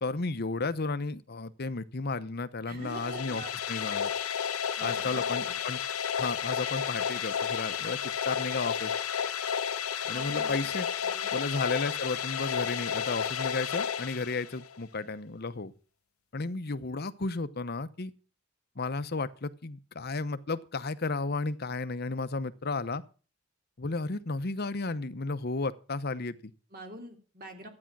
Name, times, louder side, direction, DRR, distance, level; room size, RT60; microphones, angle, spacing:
voice 1, 0.0-4.1 4.8-5.8 6.2-8.9 10.1-10.9 11.3-15.7 16.3-18.1 18.8-23.0 23.8-26.5, left 3 dB, 50° left, 0.8 m, -33 dB
voice 2, 2.7-3.5 3.9-4.0 4.8-5.5 10.1-10.7 11.0-11.4 26.7-27.7, right 2 dB, 45° right, 3.2 m, -45 dB
sound 1, 2.8-14.8, left 8 dB, 90° left, 0.9 m, -32 dB
13.0 x 9.7 x 6.1 m
head